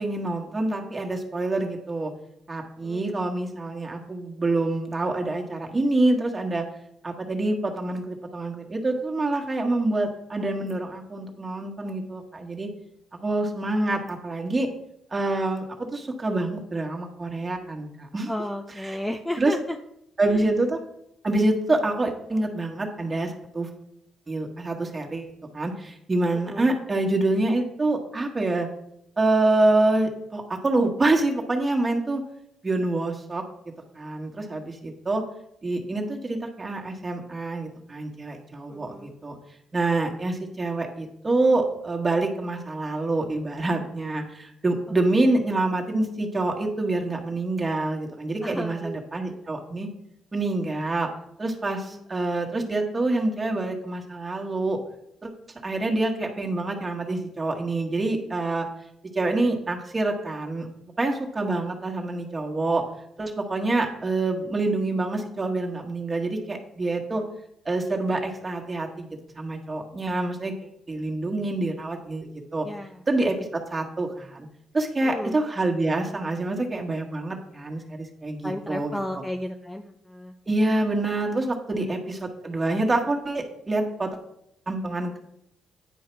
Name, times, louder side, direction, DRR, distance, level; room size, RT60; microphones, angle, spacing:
voice 1, 0.0-2.1 2.5-6.7 7.0-12.7 13.2-14.7 15.1-18.3 18.8-19.0 19.4-19.5 20.2-20.8 21.2-23.7 24.3-28.7 29.2-32.2 32.6-33.4 33.9-35.2 35.6-39.3 39.7-49.9 50.3-51.1 51.4-54.8 55.2-55.3 55.6-58.7 59.1-60.7 61.0-62.8 63.2-67.2 67.6-69.1 69.4-70.5 70.9-72.7 73.1-74.5 74.7-79.0 80.5-84.2 84.7-85.2, right 2 dB, 25° right, 1 dB, 1.5 m, -26 dB
voice 2, 18.3-19.8 20.3-20.5 26.3-26.7 38.7-39.1 45.2-45.4 48.4-49.0 51.9-52.1 72.6-73.0 75.0-75.4 78.4-80.3 81.7-81.9, left 1 dB, 5° left, 6 dB, 0.5 m, -34 dB
9.6 x 4.8 x 4.6 m, 0.76 s
cardioid pair, 90°, 0 cm